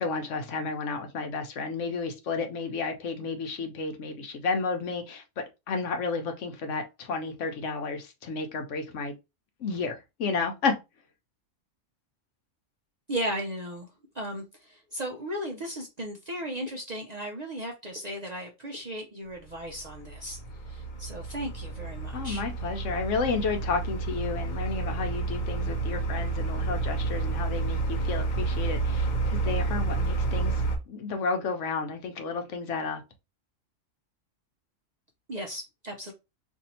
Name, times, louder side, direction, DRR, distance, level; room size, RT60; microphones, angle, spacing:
voice 1, 0.0-9.1 9.6-10.7 22.1-33.0, left 4 dB, 70° left, 1.0 m, -32 dB
voice 2, 13.1-13.9 14.1-20.4 20.7-22.4 35.3-36.1, equal, 45° right, 0.6 m, -36 dB
sound 1, 19.7-30.8, right 3 dB, 45° left, 0.6 m, -30 dB
2.7 x 2.6 x 4.2 m
omnidirectional pair, 1.4 m